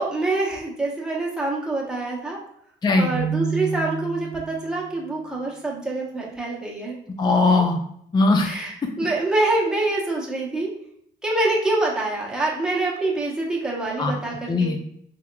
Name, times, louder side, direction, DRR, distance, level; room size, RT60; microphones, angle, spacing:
voice 1, 0.0-2.4 3.0-7.0 8.4-10.7 11.2-14.7, right 2 dB, 5° right, -4 dB, 1.0 m, -25 dB
Keyboard (musical), 3.1-4.9, right 7 dB, 50° right, 0.8 m, -29 dB
voice 2, 7.2-7.8 8.1-8.6 8.8-8.9 14.0-14.1 14.5-14.8, left 3 dB, 20° left, 3 dB, 0.4 m, -19 dB
3.5 x 3.0 x 2.2 m, 0.68 s
cardioid pair, 90°, 20 cm